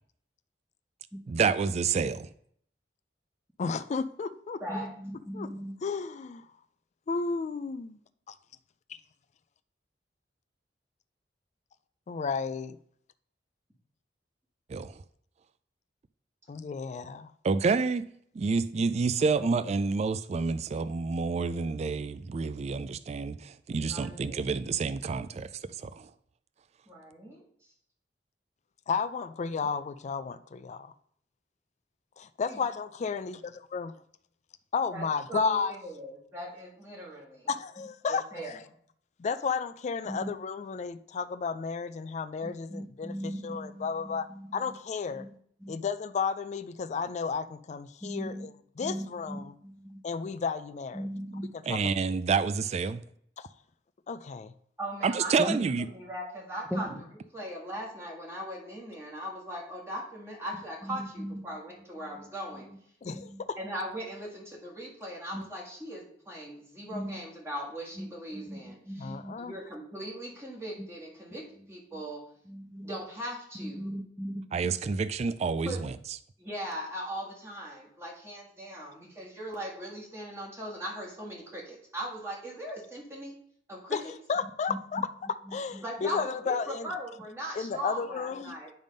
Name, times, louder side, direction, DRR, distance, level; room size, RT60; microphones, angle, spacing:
voice 1, 1.3-2.3 14.7-14.9 17.4-18.1 18.4-26.1 51.6-53.0 55.0-55.9 74.5-75.9, right 4 dB, 40° right, 0.3 m, -28 dB
voice 2, 3.6-4.9 5.3-5.5 5.8-6.4 7.1-8.0 8.3-8.4 12.1-12.8 16.5-17.3 28.9-30.9 32.2-33.9 34.7-35.7 37.5-38.6 39.2-44.3 44.5-45.3 45.7-49.5 50.0-51.1 51.5-51.9 53.4-53.5 54.1-54.5 63.0-63.6 69.0-69.5 83.9-86.9 87.6-88.6, left 5 dB, 40° left, 0.4 m, -33 dB
voice 3, 5.1-5.8 40.1-40.3 42.4-44.5 45.2-45.3 45.6-45.8 48.0-48.5 48.8-50.0 50.9-51.5 55.4-55.6 56.7-56.8 61.2-61.3 63.1-63.4 65.3-65.4 66.9-67.2 68.0-68.1 68.3-69.3 72.5-72.9 73.6-74.4, equal, 5° left, 0.7 m, -38 dB
voice 4, 23.9-24.5 26.9-27.7 32.5-32.6 34.9-37.4 38.1-38.6 54.8-62.7 63.6-72.2 72.8-73.9 75.6-75.8 76.4-83.4 83.7-84.1 85.8-88.7, equal, 15° right, 1.7 m, -39 dB
9.1 x 3.5 x 5.2 m
head